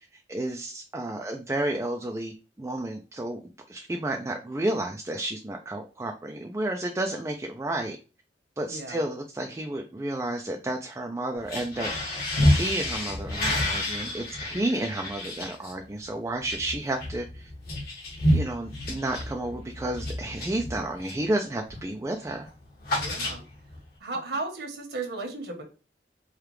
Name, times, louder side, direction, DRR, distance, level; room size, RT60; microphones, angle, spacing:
voice 1, 0.3-3.4 3.7-8.0 8.6-17.5 18.3-22.5, right 1 dB, 15° right, 2 dB, 0.4 m, -31 dB
voice 2, 8.7-9.0 23.0-23.4 24.0-25.6, right 3 dB, 70° right, 3 dB, 1.3 m, -34 dB
sound 1, 11.4-21.3 21.7-22.0 22.2-23.8, left 1 dB, 55° left, 1.6 m, -29 dB
4.8 x 2.4 x 3.2 m, 0.33 s
head